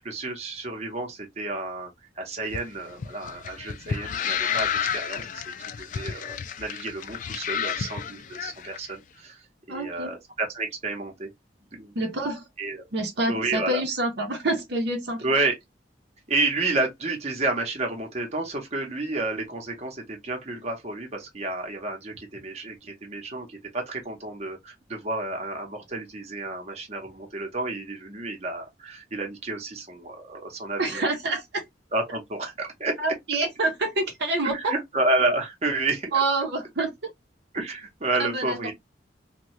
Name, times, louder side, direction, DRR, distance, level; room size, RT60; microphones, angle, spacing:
voice 1, 0.0-1.9 2.2-5.4 5.8-9.4 9.7-11.3 11.7-11.9 12.6-12.8 13.3-13.8 15.2-15.5 16.3-31.0 31.9-33.0 34.5-36.2 37.5-38.7, right 2 dB, 35° right, 0.9 m, -30 dB
sound 1, 2.4-8.8, left 8 dB, 45° left, 0.3 m, -31 dB
voice 2, 9.7-10.2 11.9-12.4 12.9-15.2 30.8-31.6 33.0-34.8 36.1-36.9 38.2-38.6, right 2 dB, 65° right, 0.8 m, -27 dB
2.7 x 2.3 x 3.0 m
head